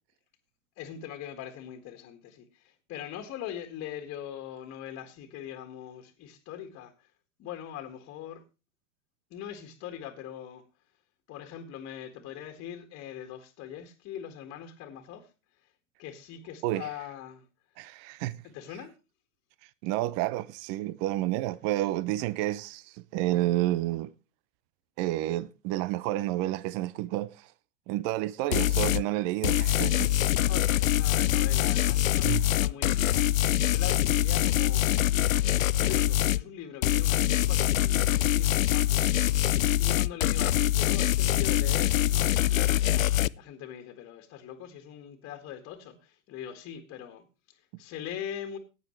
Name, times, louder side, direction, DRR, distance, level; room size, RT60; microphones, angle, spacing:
voice 1, 0.8-7.1 7.4-8.4 9.3-10.6 11.3-15.3 15.6-15.7 16.0-17.5 18.4-18.9 30.5-35.1 35.6-48.6, left 10 dB, 35° left, 1.9 m, -42 dB
voice 2, 17.8-18.4 19.8-24.1 25.0-27.5 27.9-30.3 32.3-32.5, right 15 dB, 40° right, 0.7 m, -30 dB
sound 1, 28.5-29.0 29.4-36.4 36.8-43.3, left 13 dB, 85° left, 0.5 m, -24 dB
16.0 x 9.3 x 3.2 m
hypercardioid pair, 100°, 39 cm